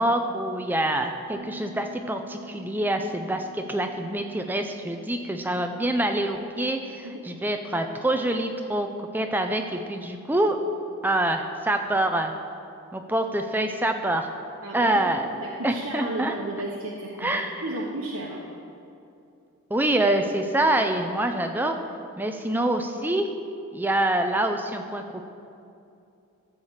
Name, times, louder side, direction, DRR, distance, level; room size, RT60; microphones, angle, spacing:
voice 1, 0.0-8.9 9.1-10.6 11.0-12.3 12.9-14.3 14.7-15.3 15.6-16.3 17.2-17.6 19.7-21.8 22.2-23.3 23.7-25.2, right 1 dB, 10° right, 5 dB, 0.5 m, -26 dB
Bass guitar, 1.3-10.7, equal, 50° right, 0.9 m, -49 dB
voice 2, 14.6-15.1 15.4-18.4, right 2 dB, 80° right, -3 dB, 1.1 m, -33 dB
13.5 x 5.0 x 7.3 m, 2.6 s
head